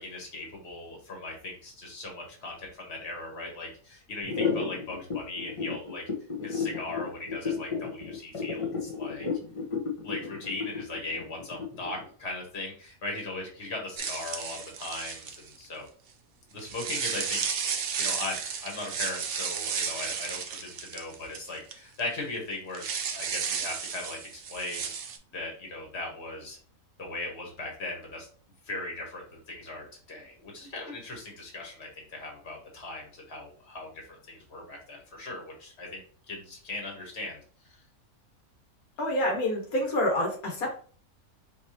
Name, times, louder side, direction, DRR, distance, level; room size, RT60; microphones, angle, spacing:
voice 1, 0.0-6.0 6.4-9.3 10.0-15.8 16.5-17.4 18.0-24.9 25.3-26.6 27.0-28.3 28.6-36.0 36.3-37.4 37.6-37.8, left 2 dB, 50° left, 0 dB, 1.6 m, -38 dB
sound 1, 4.2-12.0, left 5 dB, 30° left, 0.8 m, -32 dB
sound 2, 14.0-15.6 16.6-21.7 22.0-22.1 22.7-25.2, right 6 dB, 60° right, 0.6 m, -33 dB
voice 2, 39.0-40.8, left 1 dB, 90° left, 0 dB, 1.7 m, -27 dB
4.7 x 3.1 x 2.8 m, 0.42 s
omnidirectional pair, 1.5 m